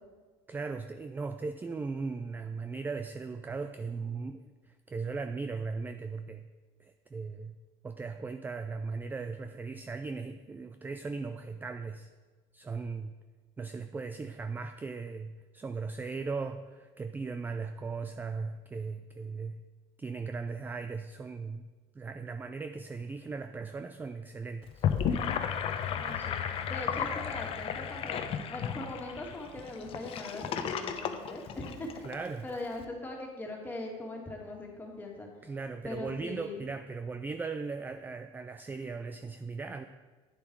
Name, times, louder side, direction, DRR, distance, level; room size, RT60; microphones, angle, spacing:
voice 1, 0.5-6.5 6.8-7.6 7.8-12.1 12.5-13.1 13.6-19.6 20.0-21.7 22.0-24.8 32.0-32.5 35.4-39.8, right 4 dB, 15° right, 9 dB, 0.3 m, -38 dB
Gurgling / Sink (filling or washing), 24.6-32.2, left 8 dB, 45° left, 0.8 m, -33 dB
voice 2, 26.0-26.4 26.7-28.2 28.5-31.9 32.4-35.3 35.8-36.6, left 2 dB, 15° left, -1 dB, 2.2 m, -40 dB
9.8 x 7.2 x 4.7 m, 1.4 s
cardioid pair, 125°, 13 cm